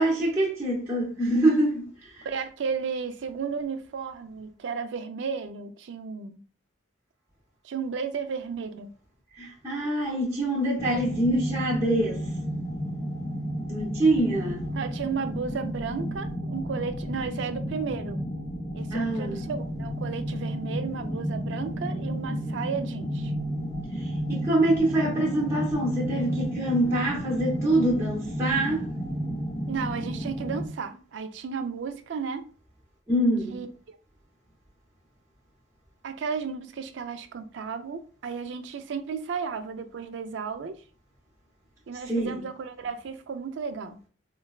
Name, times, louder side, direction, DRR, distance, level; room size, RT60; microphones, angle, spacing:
voice 1, 0.0-2.3 9.4-12.3 13.7-14.7 18.9-19.4 23.9-28.9 33.1-33.6 42.1-42.4, right 1 dB, 15° right, 0.7 m, -25 dB
voice 2, 2.2-6.4 7.6-8.9 14.7-18.2 18.7-23.3 29.7-32.5 33.5-33.7 36.0-40.8 41.9-44.0, right 5 dB, 70° right, 0.4 m, -33 dB
sound 1, 10.8-30.7, equal, 15° left, 0.3 m, -32 dB
3.9 x 2.2 x 2.3 m
head